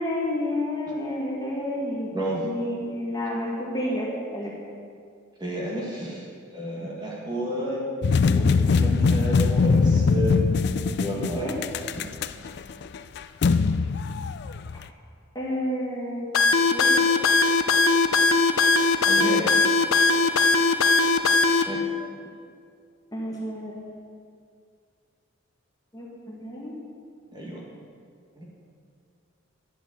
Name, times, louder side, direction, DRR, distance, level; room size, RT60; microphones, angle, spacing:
voice 1, 0.0-2.1 2.4-4.5 11.4-11.6 15.3-16.3 16.7-16.9 23.1-24.0 25.9-26.8, left 1 dB, 15° left, -5 dB, 1.7 m, -30 dB
voice 2, 2.1-2.5 5.4-7.8 8.3-10.3 11.0-11.5 11.9-12.0 19.0-19.5 21.7-21.8 27.3-27.6 28.4-28.5, equal, 20° right, -4 dB, 1.9 m, -31 dB
sound 1, 8.0-14.9, left 4 dB, 50° left, 0.3 m, -22 dB
sound 2, 16.3-21.6, left 3 dB, 80° left, 0.7 m, -19 dB
11.0 x 5.6 x 8.4 m, 2.3 s
head